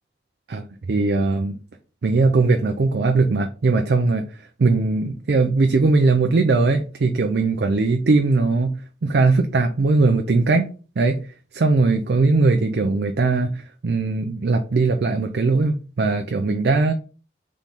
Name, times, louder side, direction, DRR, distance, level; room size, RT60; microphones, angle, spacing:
voice 1, 0.5-1.6 2.0-4.3 4.6-8.8 9.0-10.7 11.0-11.2 11.5-16.9, right 3 dB, 60° right, 0.4 m, -19 dB
3.5 x 3.1 x 4.1 m
head